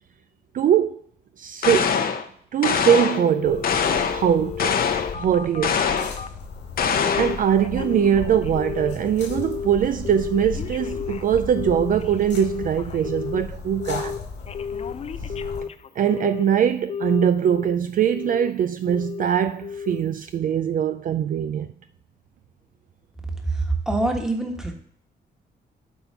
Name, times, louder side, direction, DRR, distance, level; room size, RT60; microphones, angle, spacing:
voice 1, 0.5-1.0 1.4-2.0 2.5-3.7 4.0-4.8 5.1-5.9 7.1-14.2 16.0-21.7, right 9 dB, 50° right, 0.4 m, -22 dB
sound 1, 1.6-2.2 2.6-3.3 3.6-4.3 4.6-5.2 5.6-6.2 6.8-7.4, left 6 dB, 55° left, 0.8 m, -23 dB
Telephone, 3.1-6.4 7.0-7.4 7.6-9.0 9.3-9.7 10.0-13.4 13.8-14.2 14.5-16.5 16.9-17.8 18.1-18.5 18.9-19.3 19.6-20.0 20.4-20.5, left 7 dB, 35° left, 0.4 m, -33 dB
sound 2, 3.4-15.6, left 4 dB, 85° left, 2.5 m, -36 dB
voice 2, 23.4-24.7, right 2 dB, 5° right, 1.3 m, -24 dB
7.9 x 4.3 x 5.6 m
cardioid pair, 125°, 18 cm